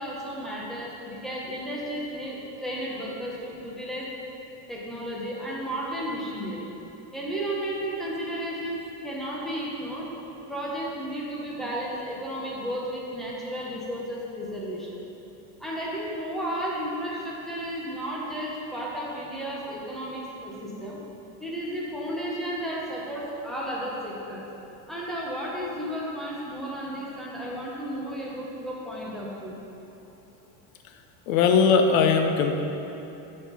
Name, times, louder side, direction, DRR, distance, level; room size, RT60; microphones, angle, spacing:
voice 1, 0.0-4.1 4.7-6.7 7.1-10.1 10.5-15.0 15.6-21.0 21.4-24.4 24.9-29.5, equal, ahead, -5 dB, 0.9 m, -33 dB
voice 2, 31.3-32.6, left 5 dB, 75° left, 5 dB, 0.9 m, -20 dB
12.0 x 4.4 x 4.1 m, 3.0 s
cardioid pair, 170°, 41 cm